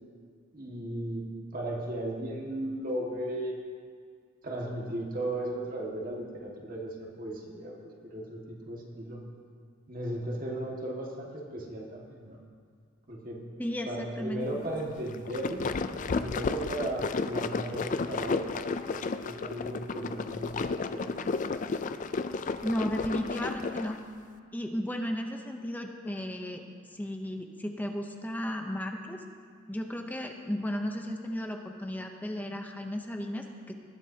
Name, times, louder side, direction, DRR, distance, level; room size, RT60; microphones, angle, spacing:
voice 1, 0.5-1.2 1.5-3.6 4.4-7.7 8.0-9.2 9.9-12.4 13.1-13.4 13.8-15.7 16.1-18.5 18.8-21.0, right 1 dB, 40° right, -2 dB, 1.8 m, -36 dB
voice 2, 13.6-14.5 22.6-24.0 24.5-26.6 26.9-29.2 29.7-33.7, equal, 10° left, 3 dB, 0.7 m, -34 dB
sound 1, 15.1-24.0, left 4 dB, 40° left, 0.4 m, -32 dB
20.0 x 11.0 x 2.8 m, 2.1 s
head